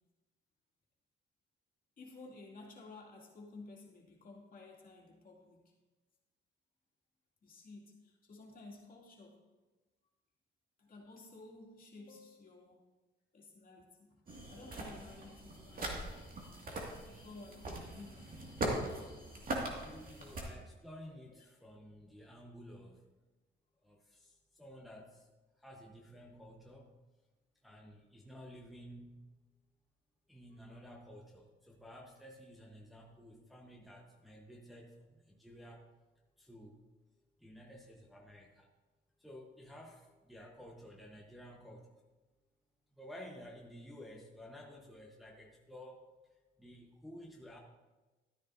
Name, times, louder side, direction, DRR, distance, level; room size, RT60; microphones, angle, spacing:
voice 1, 2.0-5.7 7.4-9.5 10.8-12.9 13.3-14.2 14.5-16.0 17.0-18.2 30.7-30.8, left 3 dB, 45° left, -2 dB, 2.5 m, -54 dB
sound 1, 14.3-20.4, right 1 dB, 45° right, 2.3 m, -41 dB
voice 2, 19.7-23.1 23.8-25.3 25.6-26.9 27.6-29.3 30.3-35.8 36.4-36.8 37.4-38.7 39.2-41.9 42.9-46.0 46.6-47.6, equal, ahead, -2 dB, 1.2 m, -53 dB
12.5 x 9.9 x 2.7 m, 1.2 s
cardioid pair, 90°, 20 cm